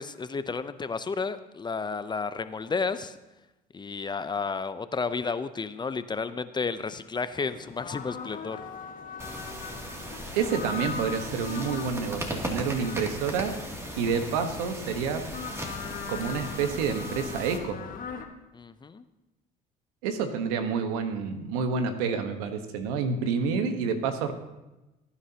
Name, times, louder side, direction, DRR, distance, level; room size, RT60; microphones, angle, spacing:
voice 1, 0.0-3.2 3.7-8.6 18.5-19.1, left 4 dB, 25° left, 12 dB, 0.7 m, -32 dB
sound 1, 7.4-18.2, left 6 dB, 50° left, 1.4 m, -40 dB
sound 2, 9.2-17.6, equal, 15° right, 2.6 m, -38 dB
voice 2, 10.3-13.5 14.0-15.2 16.1-17.8 20.0-24.3, right 6 dB, 90° right, 7 dB, 1.3 m, -28 dB
19.0 x 9.8 x 2.9 m, 1.0 s
supercardioid pair, 80°, 19 cm